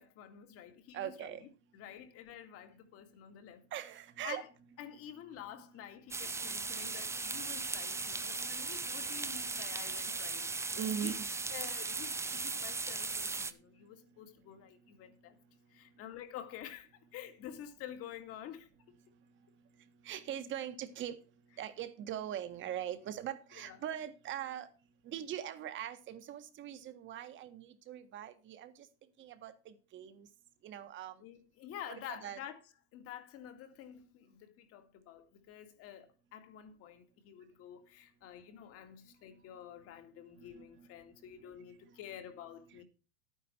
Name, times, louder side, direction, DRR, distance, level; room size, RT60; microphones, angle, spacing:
voice 1, 0.0-1.3 1.7-3.6 4.2-4.5 4.8-11.1 11.5-15.4 15.7-18.7 23.6-23.8 31.2-32.6 32.9-42.8, left 10 dB, 40° left, 2.2 m, -49 dB
voice 2, 0.9-1.4 3.7-4.4 5.5-5.8 6.2-6.7 7.1-7.4 7.7-8.5 10.7-11.2 20.0-21.2 21.6-24.7 25.0-28.9 29.2-30.3 30.6-31.2 31.9-32.4 40.4-40.9, right 10 dB, 35° right, 1.7 m, -42 dB
sound 1, 6.1-13.5, right 3 dB, 10° right, 0.7 m, -37 dB
11.5 x 9.4 x 4.5 m
supercardioid pair, 130°, 34 cm